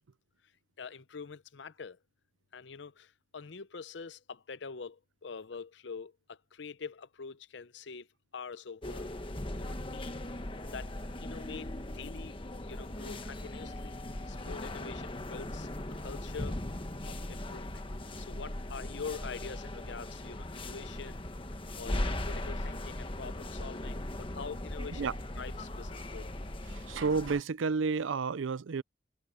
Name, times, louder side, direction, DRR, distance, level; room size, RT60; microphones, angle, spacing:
voice 1, 0.8-2.0 2.5-8.1 8.3-9.1 9.6-10.2 10.7-10.9 11.2-12.4 12.6-14.0 14.3-15.7 16.0-16.6 17.1-17.8 18.2-21.3 21.8-26.3, left 5 dB, 65° left, 0.7 m, -45 dB
sound 1, 8.8-27.4, left 1 dB, 25° left, 1.3 m, -39 dB
voice 2, 26.9-28.8, right 4 dB, 85° right, 0.5 m, -30 dB
head